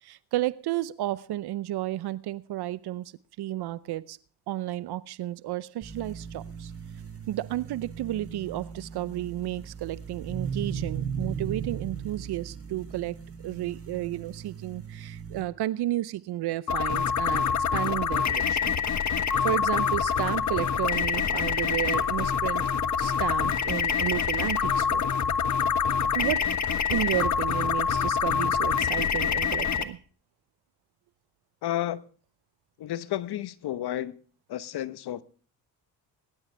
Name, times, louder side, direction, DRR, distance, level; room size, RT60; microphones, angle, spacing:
voice 1, 0.0-3.1 3.4-4.2 4.5-6.7 7.3-13.2 13.4-17.5 17.7-18.8 19.4-22.7 23.0-25.0 26.1-26.5 26.9-30.0, right 15 dB, 60° right, 0.7 m, -32 dB
sound 1, 5.8-15.4, right 7 dB, 35° right, 5.8 m, -37 dB
sound 2, 16.7-29.8, left 7 dB, 40° left, 1.4 m, -26 dB
voice 2, 31.6-32.0 32.8-34.2 34.5-35.2, left 13 dB, 60° left, 1.1 m, -31 dB
20.5 x 11.5 x 3.4 m
supercardioid pair, 55°, 44 cm